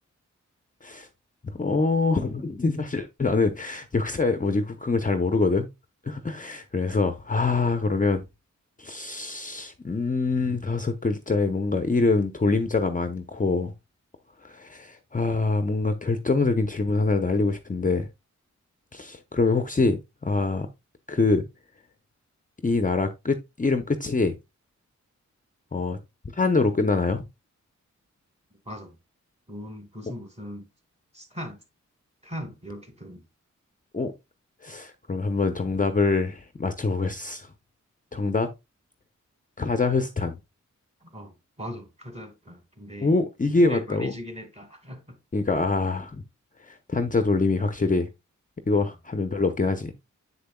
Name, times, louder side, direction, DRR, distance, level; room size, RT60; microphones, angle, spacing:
voice 1, 1.4-5.7 6.0-8.2 8.8-13.7 14.4-18.1 18.9-20.7 21.1-21.4 22.6-24.4 25.7-26.0 26.3-27.2 33.9-34.1 34.6-37.5 38.1-38.5 39.6-40.4 43.0-44.1 45.3-46.2 46.6-48.1 48.7-49.9, left 3 dB, 25° left, 0.7 m, -25 dB
voice 2, 28.7-29.0 29.5-30.7 31.1-31.6 32.2-33.2 38.1-38.2 41.0-43.1 43.5-45.2 48.8-48.9, equal, 20° right, 2.2 m, -39 dB
7.2 x 6.7 x 2.3 m
cardioid pair, 60°, 30 cm